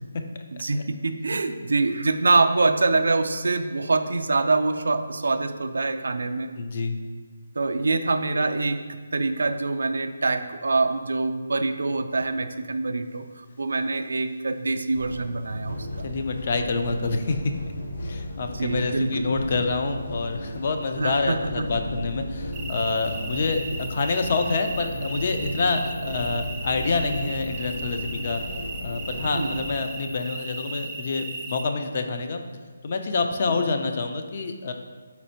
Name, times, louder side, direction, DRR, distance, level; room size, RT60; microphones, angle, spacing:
voice 1, 0.5-6.5 7.6-16.1 18.5-19.3 21.0-21.7 29.3-29.7 33.5-33.6, right 3 dB, 75° right, 8 dB, 0.3 m, -25 dB
voice 2, 6.6-7.0 16.0-17.5 18.0-23.6 23.9-28.4 28.8-32.4 32.8-34.7, left 3 dB, 45° left, 6 dB, 0.4 m, -27 dB
sound 1, 14.9-29.7, left 1 dB, 75° left, 0.9 m, -35 dB
sound 2, 22.5-31.6, right 3 dB, 10° right, 0.5 m, -37 dB
4.2 x 4.2 x 2.7 m, 1.5 s
figure-of-eight pair, 160°, 0 cm